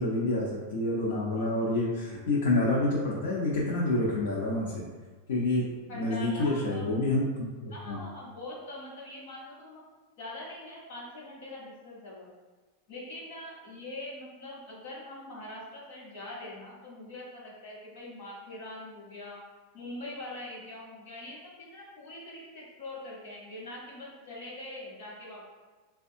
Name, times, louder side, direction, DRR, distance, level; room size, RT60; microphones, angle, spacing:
voice 1, 0.0-4.8 5.3-5.7 5.9-7.3 7.6-8.0, left 2 dB, 85° left, -5 dB, 0.7 m, -28 dB
voice 2, 5.9-7.0 7.7-9.8 10.2-12.3 12.9-19.4 19.7-25.5, left 1 dB, 60° left, -4 dB, 1.1 m, -43 dB
4.2 x 2.2 x 2.7 m, 1.3 s
supercardioid pair, 175°, 0 cm